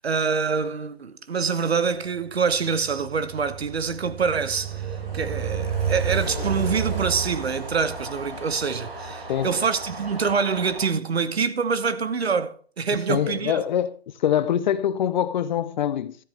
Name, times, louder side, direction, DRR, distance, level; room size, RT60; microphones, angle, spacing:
voice 1, 0.0-13.6, right 5 dB, 80° right, 1.2 m, -25 dB
Train, 2.4-10.8, right 6 dB, 60° right, 6.2 m, -31 dB
voice 2, 12.9-13.9 14.2-16.2, left 9 dB, 45° left, 0.9 m, -24 dB
13.0 x 10.5 x 3.4 m
figure-of-eight pair, 130°, 31 cm